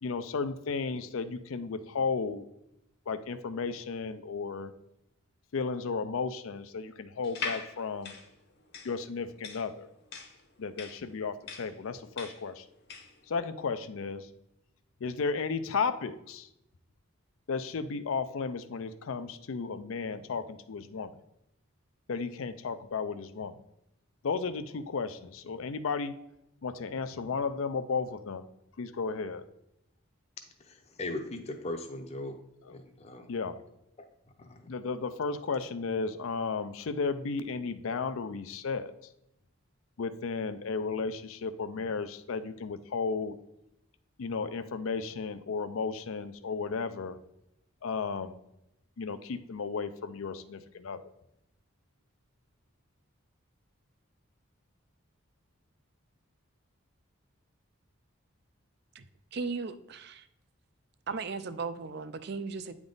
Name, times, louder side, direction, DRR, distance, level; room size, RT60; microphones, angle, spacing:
voice 1, 0.0-2.5 3.1-4.7 5.5-8.1 8.8-9.9 10.6-12.6 13.3-14.3 15.0-16.5 17.5-21.1 22.1-23.5 24.2-26.1 26.6-28.5 28.8-29.4 32.7-32.8 33.3-33.6 34.7-38.9 40.0-43.4 44.2-47.2 47.8-48.4 49.0-51.0, left 4 dB, 75° left, 11 dB, 0.5 m, -34 dB
sound 1, 7.2-13.2, left 4 dB, 50° left, 0.9 m, -41 dB
voice 2, 30.6-32.4 32.7-33.3 34.4-34.7, left 2 dB, 30° left, 5 dB, 0.7 m, -39 dB
voice 3, 59.3-60.3 61.1-62.7, right 4 dB, 50° right, 12 dB, 0.4 m, -36 dB
8.9 x 3.6 x 3.8 m, 0.83 s
head